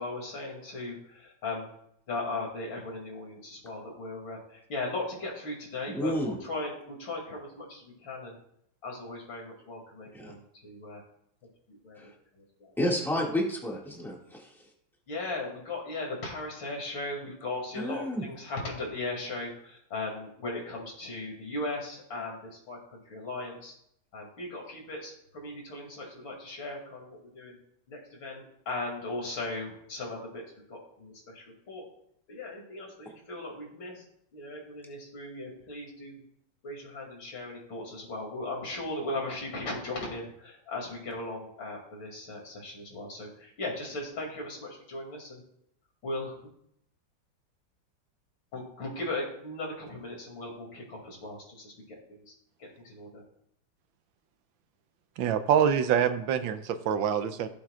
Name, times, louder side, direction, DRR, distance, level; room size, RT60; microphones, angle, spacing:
voice 1, 0.0-1.7 2.1-8.4 8.8-11.0 11.7-12.7 15.1-23.7 24.1-27.6 27.9-30.4 30.7-31.9 32.3-34.0 34.3-36.2 36.6-45.4 46.0-46.5 48.5-51.8 52.1-52.2 52.6-53.2, left 2 dB, 80° left, -1 dB, 3.3 m, -38 dB
voice 2, 5.9-6.4 10.1-10.3 12.0-12.1 12.8-14.5 17.8-18.2, equal, ahead, -2 dB, 1.7 m, -30 dB
voice 3, 55.2-57.5, right 8 dB, 80° right, 10 dB, 1.4 m, -25 dB
16.0 x 7.7 x 2.4 m, 0.72 s
omnidirectional pair, 2.1 m